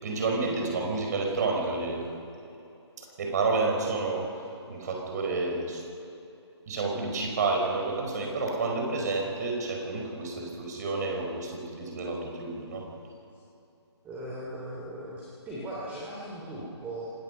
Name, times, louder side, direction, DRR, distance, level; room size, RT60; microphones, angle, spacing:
voice 1, 0.0-2.0 3.0-4.3 4.7-5.8 6.7-12.9, right 3 dB, 40° right, 1 dB, 5.0 m, -30 dB
voice 2, 14.0-17.1, right 1 dB, 10° right, -5 dB, 2.8 m, -38 dB
26.0 x 19.0 x 5.5 m, 2.8 s
figure-of-eight pair, 145°, 15 cm